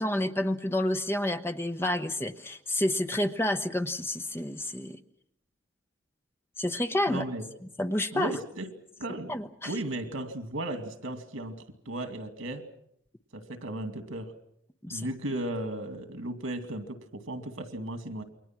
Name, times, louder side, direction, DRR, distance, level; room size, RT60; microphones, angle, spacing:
voice 1, 0.0-5.0 6.6-7.2 7.8-8.4 9.3-9.7 14.8-15.1, left 1 dB, 10° left, 8 dB, 0.8 m, -29 dB
voice 2, 7.1-7.5 8.1-8.7 9.0-9.3 9.7-11.5 11.9-12.6 13.3-14.3 14.9-18.2, right 1 dB, 90° right, 8 dB, 2.4 m, -35 dB
28.5 x 23.0 x 6.1 m, 0.72 s
head